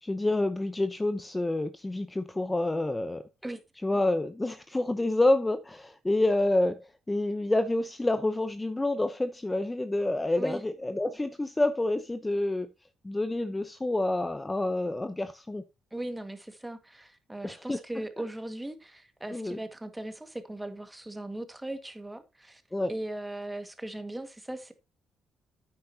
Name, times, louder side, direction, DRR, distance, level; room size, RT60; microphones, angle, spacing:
voice 1, 0.0-3.2 3.8-12.7 13.0-15.6 17.4-17.8 19.3-19.6 22.7-22.9, left 2 dB, 15° left, 0.8 m, -28 dB
voice 2, 15.9-22.6 22.9-24.7, right 1 dB, 10° right, 1.8 m, -38 dB
10.0 x 8.9 x 2.8 m
cardioid pair, 90°, 0 cm